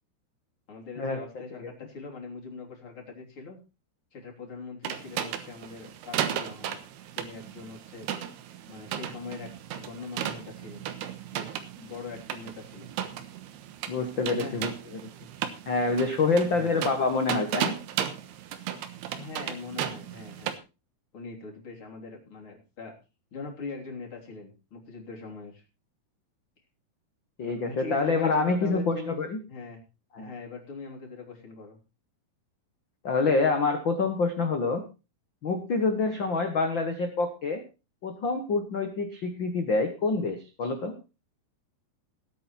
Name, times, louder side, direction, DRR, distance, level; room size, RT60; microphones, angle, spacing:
voice 1, 0.7-3.6 4.1-6.8 7.1-8.1 8.7-10.8 11.3-12.9 14.3-14.7 16.4-16.8 19.1-20.6 21.1-22.9 23.3-25.6 27.6-29.2 29.5-29.8 30.2-31.8, left 4 dB, 35° left, 0 dB, 3.9 m, -42 dB
sound 1, 4.9-20.6, right 10 dB, 80° right, 3.3 m, -35 dB
voice 2, 13.9-15.0 15.7-17.8 27.4-29.4 30.1-30.3 33.0-34.8 35.4-37.6 38.0-41.0, left 3 dB, 80° left, 6 dB, 1.0 m, -27 dB
18.5 x 8.6 x 4.4 m, 0.30 s
omnidirectional pair, 4.6 m